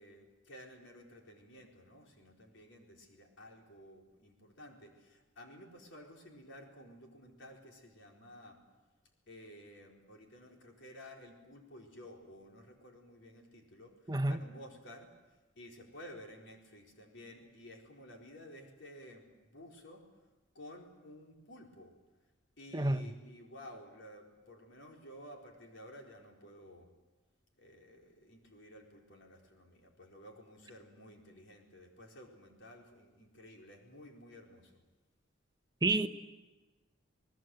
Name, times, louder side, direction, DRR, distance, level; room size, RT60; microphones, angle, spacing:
voice 1, 0.0-8.6 9.3-13.9 14.3-15.1 15.6-20.0 20.5-21.9 22.6-26.9 27.6-34.7, equal, 65° left, 4.4 m, -53 dB
voice 2, 14.1-14.4 22.7-23.0 35.8-36.1, right 2 dB, 20° right, 0.9 m, -29 dB
29.0 x 19.0 x 7.9 m
head